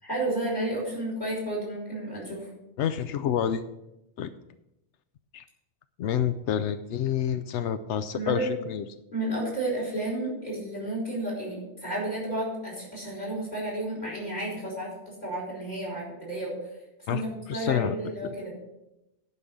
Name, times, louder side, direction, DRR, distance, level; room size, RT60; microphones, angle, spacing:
voice 1, 0.0-2.5 8.1-8.5 9.1-16.5 17.1-18.5, right 1 dB, 40° left, -4 dB, 5.2 m, -32 dB
voice 2, 2.8-3.6 4.2-4.3 5.3-5.4 6.0-8.8 17.1-17.2 17.5-18.0, left 9 dB, 85° left, 11 dB, 0.9 m, -28 dB
11.0 x 5.5 x 7.9 m, 0.91 s
omnidirectional pair, 1.2 m